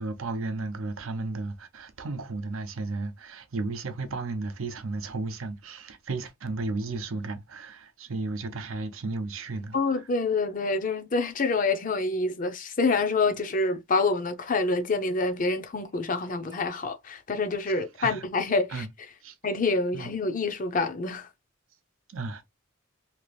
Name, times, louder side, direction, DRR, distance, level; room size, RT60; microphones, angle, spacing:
voice 1, 0.0-9.8 18.0-18.2 18.7-18.9 19.2-19.3 19.9-20.1 22.1-22.5, right 3 dB, 85° right, 0.6 m, -34 dB
voice 2, 9.7-18.9 19.4-21.3, left 3 dB, 40° left, 0.6 m, -27 dB
2.9 x 2.4 x 3.1 m
head